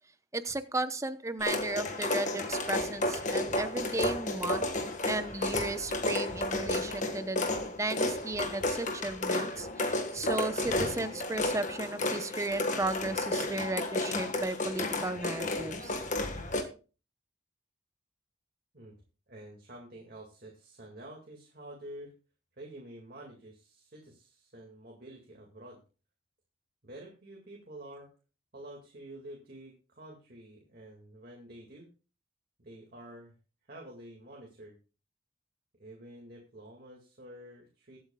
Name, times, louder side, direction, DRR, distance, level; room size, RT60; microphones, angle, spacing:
voice 1, 0.3-4.7 5.0-7.5 7.8-16.0, right 2 dB, 15° right, 11 dB, 0.8 m, -35 dB
sound 1, 1.4-16.6, left 2 dB, 40° left, 1.5 m, -32 dB
voice 2, 19.3-22.1 22.6-25.8 26.8-28.1 28.5-31.9 32.6-33.3 33.6-34.8 35.8-38.0, right 1 dB, 50° right, -1 dB, 2.2 m, -49 dB
22.0 x 8.3 x 2.3 m, 0.34 s
head